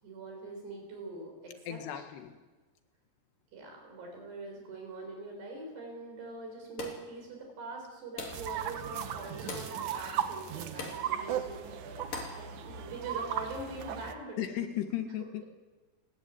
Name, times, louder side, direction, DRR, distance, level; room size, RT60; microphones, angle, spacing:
voice 1, 0.0-1.8 3.5-14.4, right 3 dB, 80° right, 2 dB, 8.9 m, -43 dB
voice 2, 1.7-2.4 14.4-15.4, left 11 dB, 85° left, 7 dB, 3.9 m, -35 dB
sound 1, 6.8-7.1 8.2-8.5 9.5-9.8 10.8-11.1 12.1-12.4, left 4 dB, 55° left, 4.8 m, -40 dB
sound 2, 8.3-14.1, right 9 dB, 60° right, 2.1 m, -37 dB
30.0 x 15.0 x 9.8 m, 1.3 s
omnidirectional pair, 4.7 m